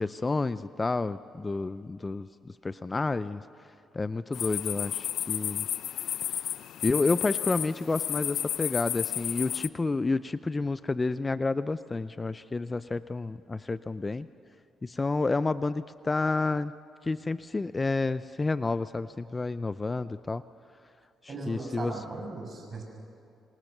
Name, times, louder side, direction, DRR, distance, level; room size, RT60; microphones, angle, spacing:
voice 1, 0.0-3.4 3.9-5.7 6.8-14.3 14.8-16.7 17.0-20.4 21.2-21.9, left 3 dB, 25° left, 14 dB, 0.5 m, -30 dB
sound 1, 4.3-9.7, left 11 dB, 75° left, 0.6 m, -32 dB
voice 2, 21.3-22.8, right 3 dB, 40° right, 2 dB, 6.4 m, -38 dB
27.0 x 24.0 x 6.7 m, 2.5 s
cardioid pair, 90°, 0 cm